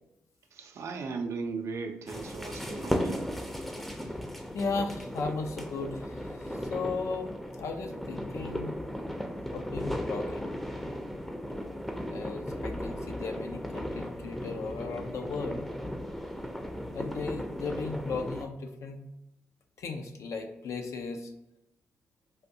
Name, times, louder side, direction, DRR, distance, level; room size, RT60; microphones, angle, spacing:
voice 1, 0.5-3.3, right 4 dB, 65° right, 5 dB, 0.4 m, -37 dB
sound 1, 2.1-18.4, equal, 5° left, 0.5 m, -36 dB
voice 2, 4.5-8.7 9.5-10.5 12.1-15.7 16.9-19.0 19.8-21.3, left 4 dB, 65° left, 5 dB, 0.5 m, -36 dB
3.4 x 2.5 x 2.7 m, 0.89 s
hypercardioid pair, 40°, 5 cm